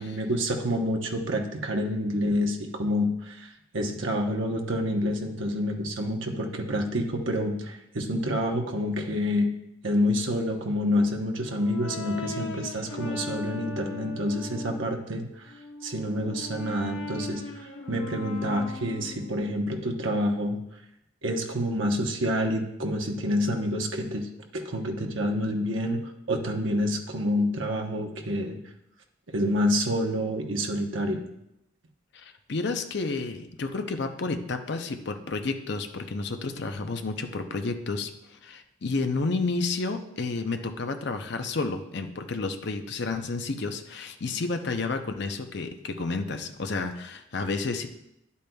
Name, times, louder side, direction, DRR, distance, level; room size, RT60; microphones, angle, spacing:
voice 1, 0.0-9.5 9.8-20.6 21.2-28.6 29.3-31.2, equal, 80° right, 2 dB, 1.0 m, -28 dB
Brass instrument, 10.9-14.9 15.5-19.5, left 3 dB, 80° left, 1.1 m, -39 dB
voice 2, 32.1-47.9, left 3 dB, 60° left, 6 dB, 0.6 m, -31 dB
10.5 x 8.4 x 2.3 m, 0.83 s
head